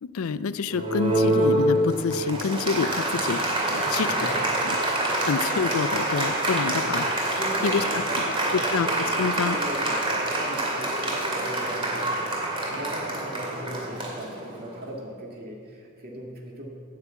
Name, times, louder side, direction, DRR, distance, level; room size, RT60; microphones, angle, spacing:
voice 1, 0.0-4.2 4.6-4.8 5.2-7.8 8.5-9.6, left 5 dB, 90° left, 15 dB, 0.5 m, -28 dB
Applause, 0.7-14.8, right 1 dB, 25° right, 2.3 m, -26 dB
voice 2, 3.7-4.7 5.1-5.2 6.6-6.8 7.4-8.6 9.2-12.1 12.7-16.7, equal, 50° right, -2 dB, 2.0 m, -38 dB
9.7 x 8.7 x 8.1 m, 2.2 s
head